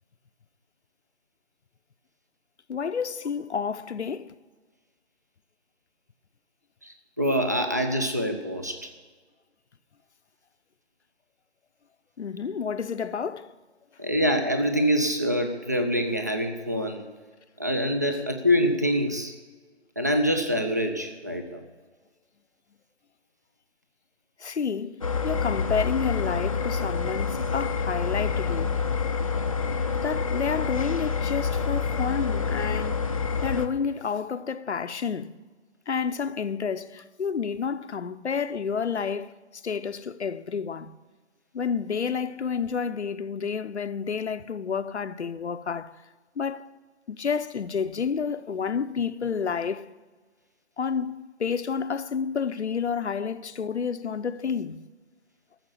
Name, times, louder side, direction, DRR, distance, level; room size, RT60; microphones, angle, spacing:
voice 1, 2.7-4.3 12.2-13.5 18.1-18.2 24.4-28.8 30.0-33.1 33.4-35.3 35.9-39.3 39.6-40.9 41.5-45.9 46.4-46.7 47.1-49.9 50.8-54.8, left 6 dB, 75° left, 0.7 m, -30 dB
voice 2, 6.8-8.8 14.0-17.1 17.6-19.3 20.0-21.6, equal, 15° right, 0.5 m, -25 dB
sound 1, 25.0-33.7, left 5 dB, 30° left, 0.5 m, -27 dB
14.5 x 7.3 x 8.4 m
figure-of-eight pair, 155°, 34 cm